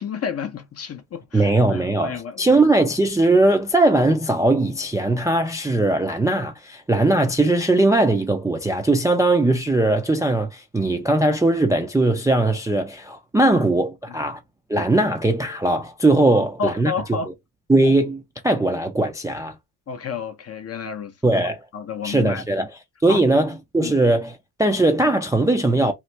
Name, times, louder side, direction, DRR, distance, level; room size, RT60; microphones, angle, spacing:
voice 1, 0.0-2.5 13.4-13.5 16.3-17.3 19.9-21.1 21.7-22.4 23.1-23.2 23.8-23.9, left 6 dB, 30° left, 0.6 m, -30 dB
voice 2, 1.3-14.4 14.7-16.9 17.7-19.5 21.2-21.6 22.0-22.7 23.0-25.9, right 2 dB, 10° right, 0.4 m, -19 dB
2.9 x 2.1 x 3.2 m
supercardioid pair, 85°, 47 cm